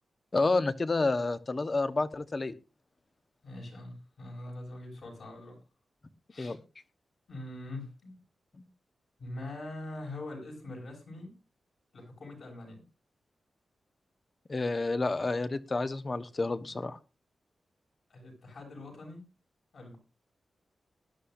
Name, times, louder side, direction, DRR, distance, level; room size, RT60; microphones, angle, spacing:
voice 1, 0.3-2.5 6.4-6.6 14.5-17.0, left 3 dB, 35° left, 12 dB, 1.0 m, -29 dB
voice 2, 3.4-5.6 6.3-6.6 7.3-8.2 9.2-11.4 11.9-12.9 18.1-19.3 19.7-20.0, left 2 dB, 70° left, 1 dB, 6.9 m, -43 dB
19.0 x 11.5 x 2.6 m, 0.28 s
wide cardioid pair, 90°, 0 cm